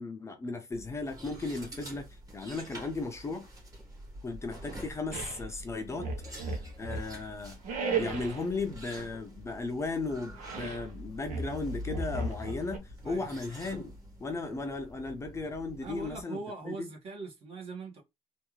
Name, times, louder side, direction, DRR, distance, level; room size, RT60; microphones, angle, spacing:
voice 1, 0.0-3.5 4.2-7.6 8.0-16.4 16.6-16.9, left 3 dB, 20° left, 0.5 m, -36 dB
sound 1, 0.7-16.2, equal, 25° right, 1.4 m, -47 dB
sound 2, 5.1-5.4 5.9-7.2 7.6-8.5 10.3-10.9 11.3-12.8, right 4 dB, 80° right, 0.9 m, -35 dB
voice 2, 15.8-18.0, right 3 dB, 50° right, 1.5 m, -41 dB
3.4 x 2.5 x 3.1 m
cardioid pair, 145°, 13 cm